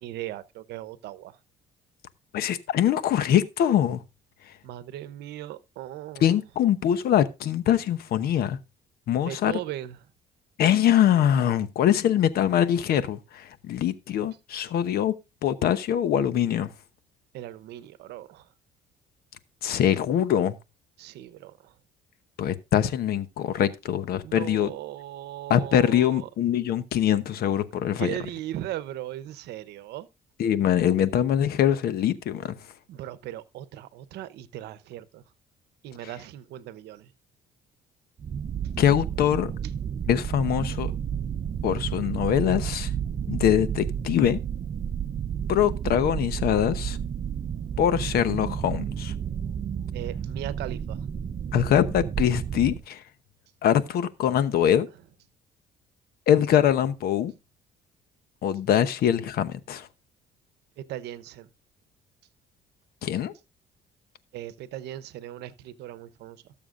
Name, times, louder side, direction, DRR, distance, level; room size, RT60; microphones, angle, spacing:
voice 1, 0.0-1.4 4.6-6.3 9.2-10.0 17.3-18.5 21.0-21.7 24.2-26.3 28.0-30.1 32.9-35.2 35.8-37.1 49.9-51.1 60.8-61.5 64.3-66.5, right 13 dB, 80° right, 0.9 m, -38 dB
voice 2, 2.3-4.0 6.2-8.6 9.1-9.5 10.6-15.1 15.4-16.7 19.6-20.6 22.4-24.7 25.5-28.1 30.4-32.6 38.8-39.5 40.1-40.9 41.6-42.9 43.3-44.4 45.5-47.0 47.8-49.1 51.5-53.0 53.6-54.9 56.3-57.3 58.4-59.9 63.0-63.3, left 10 dB, 65° left, 0.9 m, -23 dB
sound 1, 38.2-52.8, right 8 dB, 35° right, 0.7 m, -31 dB
18.0 x 7.0 x 2.5 m
cardioid pair, 110°, 17 cm